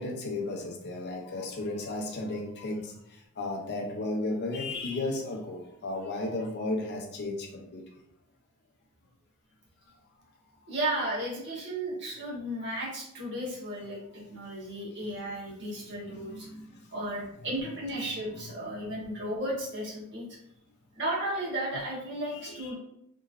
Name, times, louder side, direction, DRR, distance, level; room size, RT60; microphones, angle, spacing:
voice 1, 0.0-2.9 3.4-7.8 16.1-16.6 18.3-18.4 19.1-19.2 22.3-22.7, left 2 dB, 50° left, 1 dB, 0.4 m, -34 dB
voice 2, 10.7-16.5 16.9-20.3 20.9-22.8, right 1 dB, 55° right, -5 dB, 1.1 m, -34 dB
2.9 x 2.6 x 2.4 m, 0.78 s
head